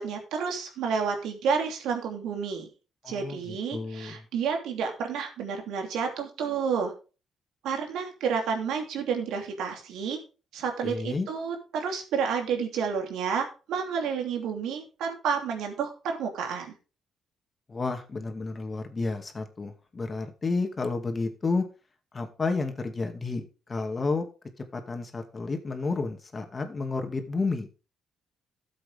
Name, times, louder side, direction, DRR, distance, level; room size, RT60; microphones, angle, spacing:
voice 1, 0.0-2.7 3.1-6.9 7.6-10.2 10.5-16.7, right 6 dB, 85° right, 4 dB, 2.8 m, -30 dB
voice 2, 3.0-4.2 10.8-11.3 17.7-21.6 22.1-23.4 23.7-24.3 24.7-27.7, left 3 dB, 30° left, 6 dB, 2.2 m, -31 dB
13.0 x 7.7 x 3.6 m, 0.33 s
cardioid pair, 90°, 0 cm